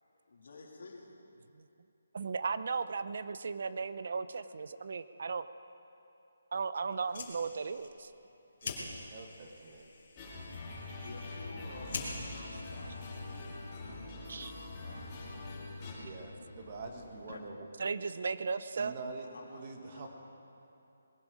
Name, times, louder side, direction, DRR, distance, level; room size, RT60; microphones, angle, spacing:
voice 1, 0.1-1.2 10.7-13.4 19.2-20.1, left 3 dB, 65° left, 0 dB, 2.8 m, -51 dB
voice 2, 2.1-5.5 6.5-8.1 14.3-14.5 17.8-19.0, right 5 dB, 50° right, 14 dB, 0.5 m, -36 dB
Fire, 6.9-13.8, left 3 dB, 45° left, 2.7 m, -46 dB
voice 3, 9.1-9.8 15.9-17.7 18.8-20.1, right 3 dB, 30° right, 3 dB, 1.4 m, -45 dB
sound 1, 10.2-15.9, left 2 dB, 20° left, 2.4 m, -44 dB
sound 2, 11.7-17.4, left 2 dB, 85° left, 1.6 m, -51 dB
20.0 x 12.5 x 5.0 m, 2.7 s
hypercardioid pair, 170°, 0 cm